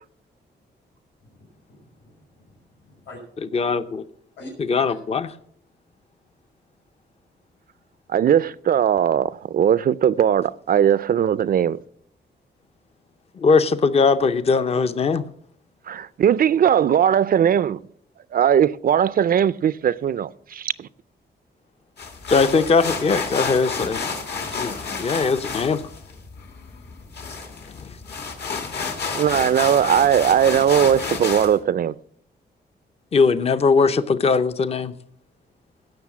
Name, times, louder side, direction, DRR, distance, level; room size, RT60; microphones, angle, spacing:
voice 1, 1.2-3.2 4.4-4.5 4.9-5.0 24.4-24.6, left 2 dB, 90° left, 6.3 m, -46 dB
voice 2, 3.5-4.0 4.7-5.3 13.4-15.2 22.3-24.0 24.6-25.8 27.7-27.9 33.1-34.9, left 4 dB, 35° left, 0.6 m, -20 dB
voice 3, 8.1-11.8 15.9-17.8 18.3-20.9 29.1-32.0, right 9 dB, 55° right, 0.4 m, -19 dB
sound 1, 22.0-31.6, left 5 dB, 65° left, 2.2 m, -30 dB
17.0 x 6.4 x 6.0 m
wide cardioid pair, 160°, 18 cm